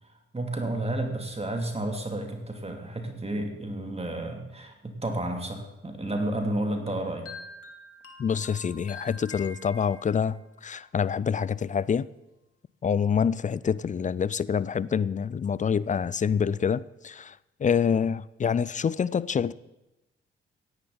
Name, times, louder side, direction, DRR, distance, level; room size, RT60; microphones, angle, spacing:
voice 1, 0.3-7.3, right 1 dB, 20° right, 2.6 m, -31 dB
sound 1, 6.9-10.4, left 3 dB, 50° left, 1.9 m, -45 dB
voice 2, 8.2-12.1 12.8-19.5, left 7 dB, 25° left, 0.5 m, -26 dB
17.5 x 10.5 x 4.0 m
figure-of-eight pair, 40°, 29 cm